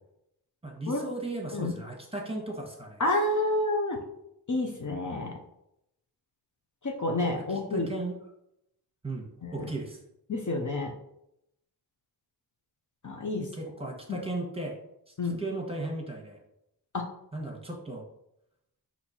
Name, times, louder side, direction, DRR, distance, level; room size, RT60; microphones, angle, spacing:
voice 1, 0.6-3.0 7.3-8.2 9.0-9.2 9.5-10.0 13.4-14.7 15.4-16.4 17.3-18.0, right 2 dB, 15° right, 1 dB, 1.3 m, -36 dB
voice 2, 3.0-4.0 4.5-5.3 6.8-7.9 9.4-9.7 10.3-10.9 13.0-13.5 14.1-14.2 15.2-15.4 16.9-17.0, left 2 dB, 45° left, 2 dB, 0.8 m, -29 dB
4.3 x 2.9 x 4.2 m, 0.81 s
cardioid pair, 45°, 42 cm